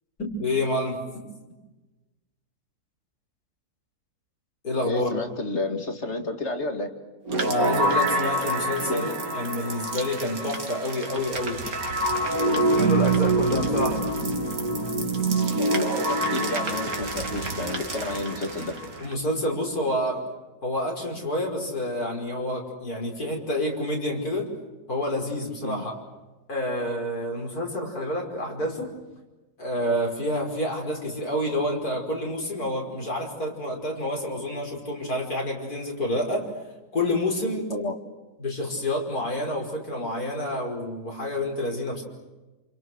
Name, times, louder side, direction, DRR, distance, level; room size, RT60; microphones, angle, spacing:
voice 1, 0.2-1.0 4.6-5.1 7.4-11.6 12.5-14.0 19.0-20.2 20.6-24.5 24.9-26.0 26.5-28.9 29.6-36.5 36.9-37.7 38.4-42.0, left 1 dB, 70° left, 0 dB, 5.9 m, -28 dB
voice 2, 4.8-6.9 8.8-9.1 15.6-18.8 25.6-25.8 37.7-37.9, left 2 dB, 45° left, 6 dB, 2.7 m, -31 dB
sound 1, 7.3-19.1, right 2 dB, 65° right, 2.8 m, -26 dB
28.5 x 28.0 x 6.4 m, 1.1 s
omnidirectional pair, 1.6 m